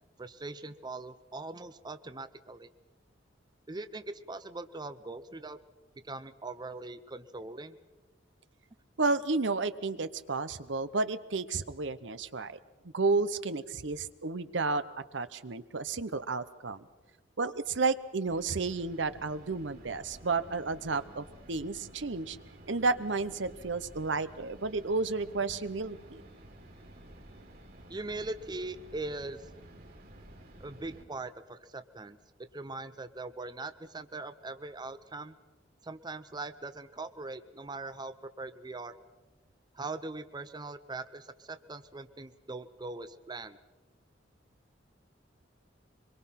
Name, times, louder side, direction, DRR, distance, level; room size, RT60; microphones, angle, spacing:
voice 1, 0.2-2.7 3.7-5.6 6.0-7.8 27.9-29.5 30.6-32.2 32.5-35.4 35.8-39.0 39.7-43.6, right 2 dB, 25° right, 11 dB, 0.7 m, -41 dB
voice 2, 9.0-12.6 12.9-14.8 15.1-16.9 17.4-22.4 22.7-26.2, right 3 dB, 70° right, 13 dB, 0.9 m, -32 dB
sound 1, 18.3-31.0, right 1 dB, 55° right, 3.2 m, -52 dB
24.5 x 22.5 x 5.8 m, 1.2 s
head